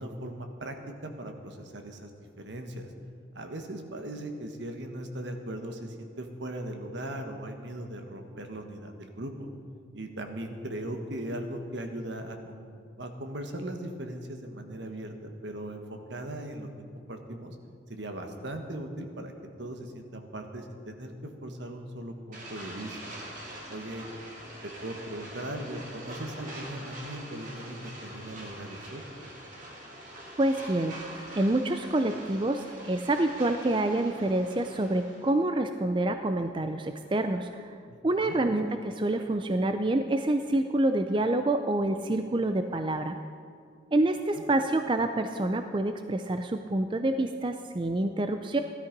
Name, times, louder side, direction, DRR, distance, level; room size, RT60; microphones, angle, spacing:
voice 1, 0.0-2.1 2.4-2.9 3.3-9.5 9.9-16.7 16.9-17.5 17.9-19.3 19.6-23.1 23.7-24.1 24.6-29.0 37.9-38.4 44.3-44.4, right 1 dB, 70° right, 5 dB, 1.5 m, -39 dB
sound 1, 22.3-35.4, right 1 dB, 40° right, 2.4 m, -44 dB
voice 2, 30.4-37.7 38.0-43.2 43.9-48.6, right 2 dB, 25° right, 7 dB, 0.4 m, -27 dB
16.5 x 12.5 x 5.3 m, 2.3 s
head